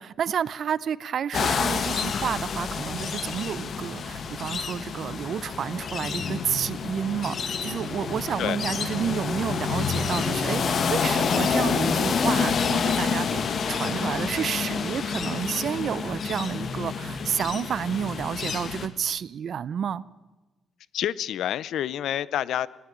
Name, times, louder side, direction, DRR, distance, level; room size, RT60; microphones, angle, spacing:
voice 1, 0.0-20.0, right 8 dB, 60° right, 0.7 m, -30 dB
sound 1, 1.3-18.9, left 6 dB, 55° left, 1.9 m, -28 dB
voice 2, 20.9-22.7, left 11 dB, 75° left, 0.7 m, -28 dB
20.0 x 16.5 x 8.7 m
cardioid pair, 90°, 0 cm